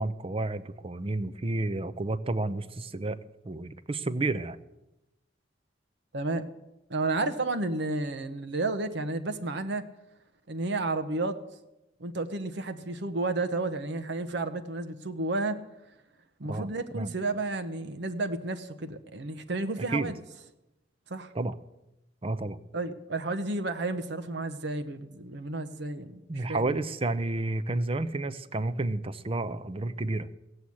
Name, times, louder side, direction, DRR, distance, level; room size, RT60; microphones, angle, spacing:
voice 1, 0.0-3.2 3.4-4.6 16.5-17.1 19.8-20.1 21.3-21.5 22.2-22.6 26.3-30.4, right 2 dB, 30° right, 15 dB, 0.6 m, -31 dB
voice 2, 6.1-6.4 6.9-9.8 10.5-11.4 12.0-15.6 16.4-20.2 21.1-21.3 22.7-26.7, right 2 dB, 65° right, 9 dB, 1.0 m, -32 dB
16.0 x 7.9 x 8.5 m, 0.94 s
head